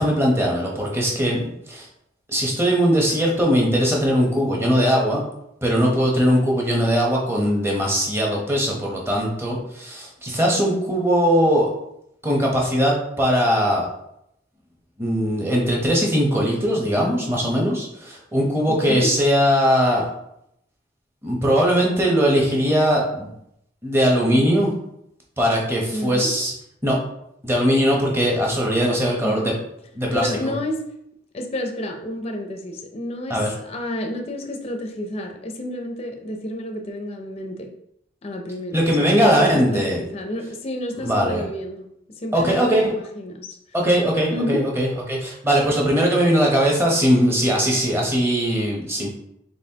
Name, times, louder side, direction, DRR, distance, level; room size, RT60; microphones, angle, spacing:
voice 1, 0.0-1.4 1.7-1.9 2.3-5.2 5.6-11.7 12.2-13.9 15.0-20.0 21.2-23.3 23.8-24.7 25.4-26.5 26.8-27.0 27.4-29.5 29.9-30.5 33.3-33.5 38.7-40.0 41.0-41.4 42.3-42.9 43.7-49.1, equal, 15° right, -2 dB, 0.8 m, -20 dB
voice 2, 18.7-19.1 25.9-26.3 29.2-29.5 30.1-30.8 31.3-33.4 33.6-37.7 38.2-41.9 42.2-43.6 44.3-44.6, left 1 dB, 30° left, 3 dB, 0.5 m, -30 dB
4.1 x 3.8 x 2.8 m, 0.77 s
head